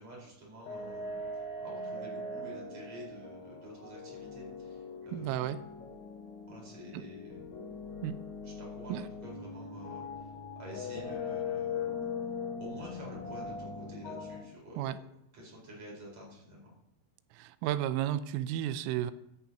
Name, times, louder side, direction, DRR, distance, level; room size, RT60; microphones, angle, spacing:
voice 1, 0.0-5.4 6.4-7.5 8.4-12.1 12.6-15.0 15.3-16.8, equal, 35° right, -3 dB, 5.2 m, -49 dB
sound 1, 0.7-14.4, left 4 dB, 45° left, 2.2 m, -40 dB
voice 2, 5.1-5.6 6.9-7.0 8.0-8.2 8.9-9.1 14.8-15.0 17.3-19.1, right 12 dB, 85° right, 13 dB, 3.1 m, -33 dB
14.5 x 14.0 x 2.9 m, 0.82 s
omnidirectional pair, 5.9 m